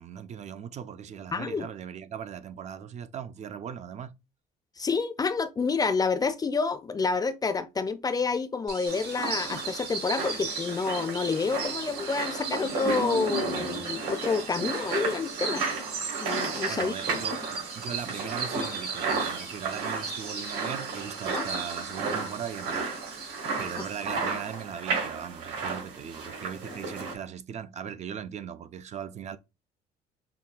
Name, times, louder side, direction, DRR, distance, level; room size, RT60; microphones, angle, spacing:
voice 1, 0.0-4.1 16.7-22.9 23.6-29.4, right 8 dB, 40° right, 0.4 m, -39 dB
voice 2, 1.3-1.7 4.8-15.7 16.2-16.9 21.4-21.5, left 4 dB, 20° left, 0.4 m, -28 dB
sound 1, 8.7-24.6, right 5 dB, 65° right, 1.5 m, -38 dB
sound 2, 8.9-27.1, right 4 dB, 85° right, 2.0 m, -34 dB
5.6 x 2.1 x 2.4 m
cardioid pair, 110°, 17 cm